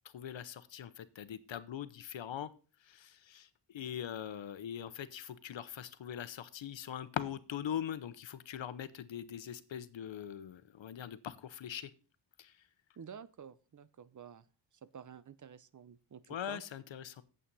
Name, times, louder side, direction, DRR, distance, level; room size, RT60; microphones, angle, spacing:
voice 1, 0.0-2.5 2.8-11.9 12.4-12.6 16.3-17.2, left 9 dB, 80° left, 14 dB, 1.0 m, -42 dB
voice 2, 13.0-14.5 14.8-16.6, right 7 dB, 40° right, 18 dB, 0.7 m, -51 dB
8.7 x 8.2 x 5.4 m, 0.35 s
wide cardioid pair, 105°, 45 cm